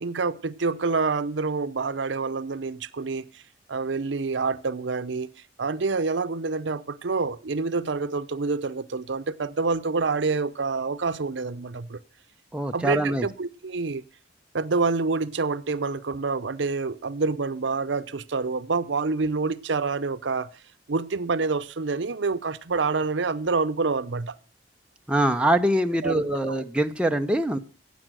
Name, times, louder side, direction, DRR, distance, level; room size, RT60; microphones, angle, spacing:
voice 1, 0.0-3.4 3.7-5.3 5.6-12.0 12.7-14.0 14.5-20.5 20.9-24.4 26.0-26.6, right 4 dB, 80° right, 0.7 m, -27 dB
voice 2, 12.5-13.2 25.1-27.6, right 1 dB, 5° right, 0.7 m, -23 dB
15.5 x 8.9 x 6.1 m
head